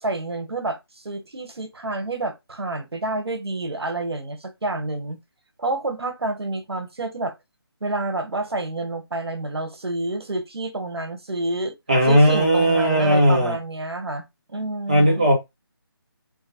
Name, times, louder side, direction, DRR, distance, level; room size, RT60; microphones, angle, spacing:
voice 1, 0.0-5.2 5.6-7.3 7.8-11.7 12.0-15.3, right 2 dB, 80° right, 1.3 m, -29 dB
voice 2, 11.9-13.5 14.9-15.3, equal, 20° right, 0.9 m, -17 dB
4.0 x 2.1 x 4.3 m
figure-of-eight pair, 180°, 13 cm